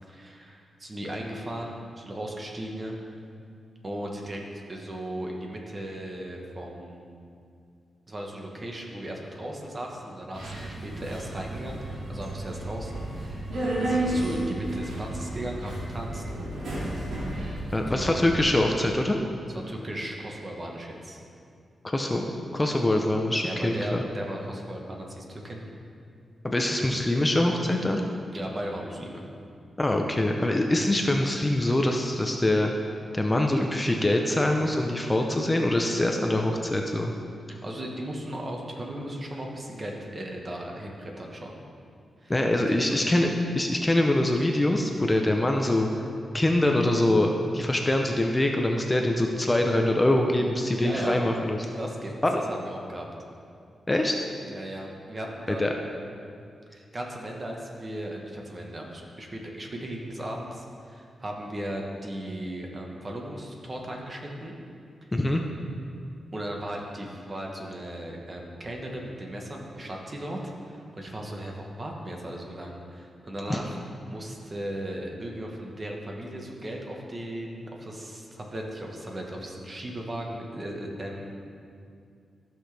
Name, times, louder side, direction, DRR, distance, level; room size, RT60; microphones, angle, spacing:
voice 1, 0.1-2.9 3.8-4.4 4.7-7.1 8.1-16.2 17.9-18.2 19.5-21.2 23.4-25.6 28.3-29.2 37.5-41.6 42.2-42.3 42.7-43.0 50.8-51.2 51.8-52.1 52.5-53.1 54.5-55.7 56.7-64.5 66.3-73.8 74.1-81.4, right 1 dB, 30° right, 0 dB, 1.3 m, -37 dB
Subway metro underground, 10.3-18.4, right 1 dB, 85° right, 2.4 m, -32 dB
voice 2, 17.7-19.2 21.8-22.3 22.5-24.0 26.4-28.0 29.8-32.7 33.1-37.1 42.3-45.9 46.3-51.6 52.2-52.4 53.9-54.2 55.5-55.7 65.1-65.4 73.5-73.6, left 1 dB, 15° left, 2 dB, 0.6 m, -24 dB
14.0 x 6.0 x 3.4 m, 2.4 s
cardioid pair, 100°, 0 cm